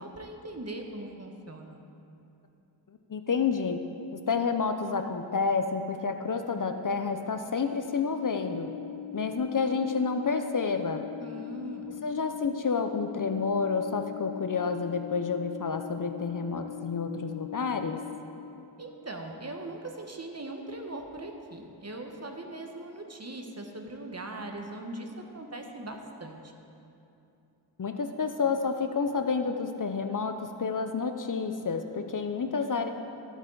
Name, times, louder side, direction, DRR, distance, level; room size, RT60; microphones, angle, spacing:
voice 1, 0.0-1.8 11.2-11.9 18.8-26.5, right 2 dB, 35° right, 3 dB, 1.1 m, -40 dB
voice 2, 3.1-3.8 4.1-8.7 9.1-11.0 12.0-18.0 27.8-32.9, left 5 dB, 50° left, 7 dB, 0.6 m, -29 dB
sound 1, 8.2-18.2, left 15 dB, 90° left, 0.6 m, -41 dB
14.0 x 8.1 x 3.9 m, 2.8 s
wide cardioid pair, 60°, 43 cm